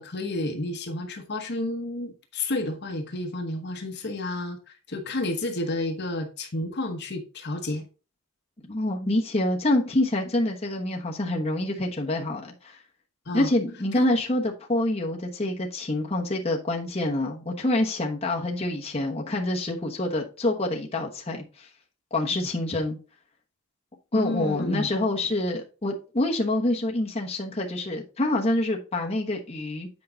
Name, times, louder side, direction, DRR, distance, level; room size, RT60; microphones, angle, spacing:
voice 1, 0.0-7.8 13.3-13.5 22.3-22.5 24.1-24.9, left 2 dB, 50° left, 1.0 m, -31 dB
voice 2, 8.6-12.8 13.3-21.7 22.1-23.0 24.1-29.9, left 1 dB, 30° left, 1.1 m, -26 dB
8.5 x 4.7 x 3.9 m
head